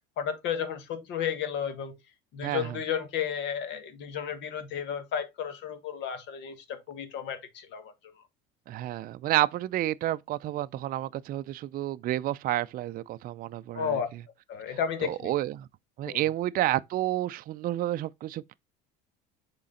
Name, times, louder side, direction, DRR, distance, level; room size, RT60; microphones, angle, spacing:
voice 1, 0.2-1.9 2.3-7.9 13.7-14.1 14.5-15.3 16.1-16.3, left 8 dB, 60° left, 1.5 m, -33 dB
voice 2, 2.4-2.8 8.7-14.0 15.0-15.7 16.0-18.5, right 14 dB, 45° right, 0.4 m, -30 dB
7.3 x 3.9 x 3.9 m
supercardioid pair, 95°, 20 cm